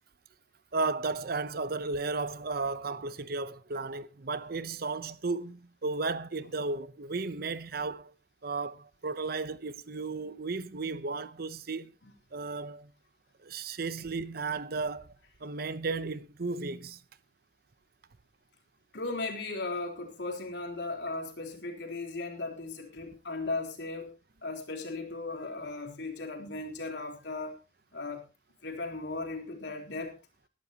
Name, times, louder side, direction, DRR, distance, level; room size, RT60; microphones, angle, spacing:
voice 1, 0.7-8.1 8.4-11.9 12.3-12.9 13.4-15.1 15.4-17.0, right 3 dB, 60° right, 0.8 m, -34 dB
voice 2, 18.9-24.1 24.4-27.6 27.9-28.2 28.6-30.2, left 3 dB, 80° left, 3.9 m, -37 dB
19.5 x 12.0 x 2.9 m
head